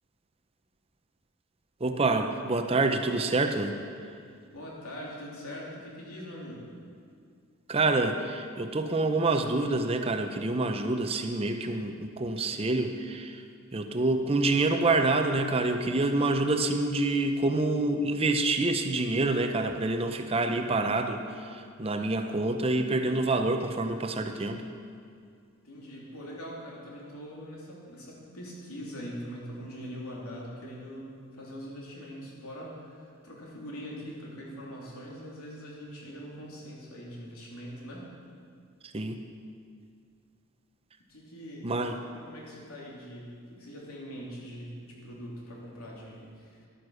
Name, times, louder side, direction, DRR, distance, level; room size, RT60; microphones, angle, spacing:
voice 1, 1.8-3.8 7.7-13.4 13.7-24.6 38.8-39.2 41.6-42.0, right 2 dB, 25° right, 6 dB, 0.6 m, -27 dB
voice 2, 4.5-6.7 25.6-38.1 41.1-41.7 42.1-46.6, equal, 85° left, -4 dB, 3.1 m, -42 dB
11.5 x 9.7 x 6.3 m, 2.3 s
head